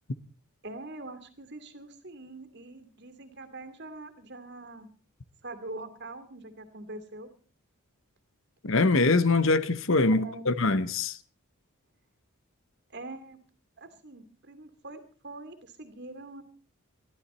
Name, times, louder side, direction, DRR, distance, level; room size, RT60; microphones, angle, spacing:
voice 1, 0.6-4.9 5.4-7.3 10.1-10.5 12.9-13.4 13.8-16.4, right 2 dB, 50° right, 2.4 m, -43 dB
voice 2, 8.6-11.2, left 3 dB, 60° left, 0.9 m, -23 dB
21.5 x 14.5 x 4.2 m
head